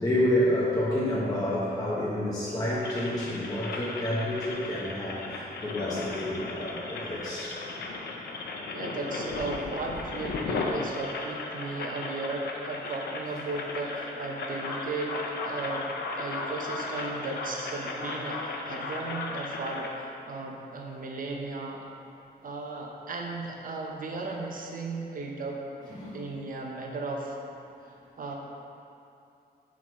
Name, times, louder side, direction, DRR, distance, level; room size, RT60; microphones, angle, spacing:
voice 1, 0.0-7.6 25.9-26.2, left 1 dB, 20° left, -7 dB, 0.8 m, -29 dB
sound 1, 2.8-19.9, left 3 dB, 75° left, 0.6 m, -36 dB
voice 2, 8.7-15.1 15.4-15.9 16.2-21.9 22.4-25.6 26.1-27.4 27.8-28.3, right 3 dB, 55° right, 0 dB, 0.7 m, -35 dB
5.8 x 4.7 x 3.6 m, 2.7 s
wide cardioid pair, 120°, 17 cm